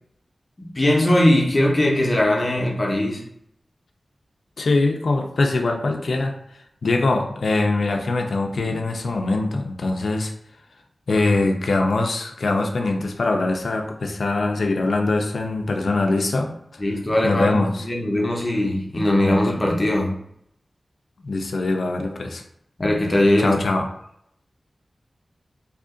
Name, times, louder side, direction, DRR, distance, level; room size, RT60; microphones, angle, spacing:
voice 1, 0.6-3.2 8.6-8.8 16.8-20.2 22.8-23.6, left 1 dB, 35° left, 0.7 m, -20 dB
voice 2, 4.6-6.4 6.8-10.3 11.1-16.8 17.2-17.8 21.2-22.4 23.4-23.9, left 2 dB, 80° left, 0.4 m, -22 dB
2.8 x 2.5 x 3.7 m
wide cardioid pair, 75°, 0 cm